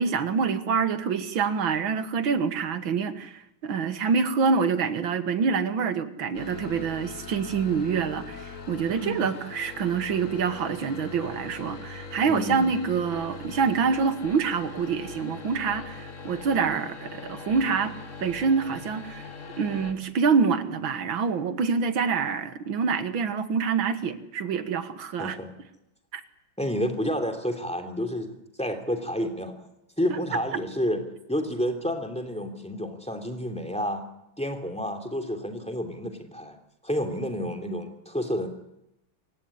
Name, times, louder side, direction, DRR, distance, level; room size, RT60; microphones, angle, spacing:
voice 1, 0.0-17.9 18.2-19.2 19.6-25.4 26.1-26.2, right 5 dB, 75° right, 11 dB, 2.3 m, -26 dB
sound 1, 6.3-19.9, left 4 dB, 40° left, 2.0 m, -41 dB
voice 2, 8.9-9.3 12.3-12.6 25.2-25.5 26.6-28.3 28.6-29.5 30.0-31.0 31.3-34.1 34.4-36.6 36.8-38.5, equal, 5° left, 6 dB, 3.0 m, -30 dB
27.0 x 16.5 x 9.8 m, 0.85 s
omnidirectional pair, 2.2 m